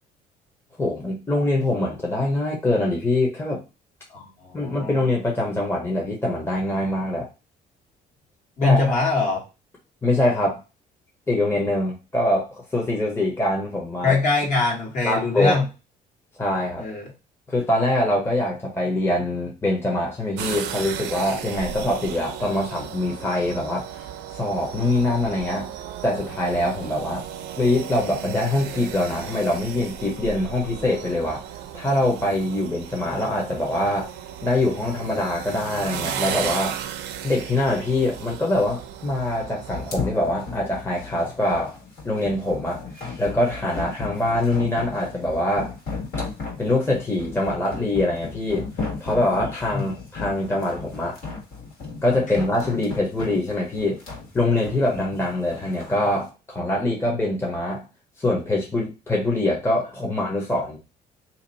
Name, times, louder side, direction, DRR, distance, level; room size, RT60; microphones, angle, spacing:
voice 1, 0.8-3.6 4.5-7.3 8.6-9.0 10.0-10.6 11.3-14.2 15.0-15.6 16.4-16.8 17.5-24.0 24.3-25.7 26.0-27.2 27.6-31.4 31.7-34.1 34.4-36.8 37.2-41.7 42.0-42.8 43.2-45.7 46.6-48.7 49.0-51.2 52.0-54.0 54.3-57.8 58.2-60.8, left 1 dB, 15° left, -2 dB, 1.0 m, -24 dB
voice 2, 4.1-5.0 8.6-9.4 14.0-15.7 16.8-17.0 49.7-49.9 52.3-52.4, left 3 dB, 50° left, -2 dB, 1.6 m, -22 dB
sound 1, 20.4-40.0, right 9 dB, 85° right, 0.5 m, -35 dB
sound 2, 39.7-56.0, left 4 dB, 65° left, 1.7 m, -35 dB
2.8 x 2.5 x 4.0 m, 0.29 s
cardioid pair, 110°, 17 cm